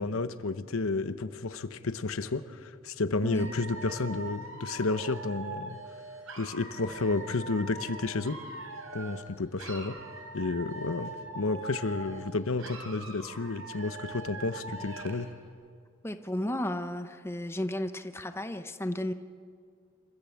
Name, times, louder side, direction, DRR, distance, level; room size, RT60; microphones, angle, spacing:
voice 1, 0.0-5.8 6.4-8.4 8.9-10.0 10.3-15.3, left 3 dB, 85° left, 12 dB, 0.9 m, -31 dB
voice 2, 3.2-3.5 16.0-19.1, left 1 dB, 10° left, 9 dB, 0.8 m, -33 dB
Dog / Alarm, 3.4-9.3 9.6-12.3 12.6-15.3, right 2 dB, 85° right, 3.8 m, -42 dB
27.0 x 14.0 x 8.5 m, 2.1 s
head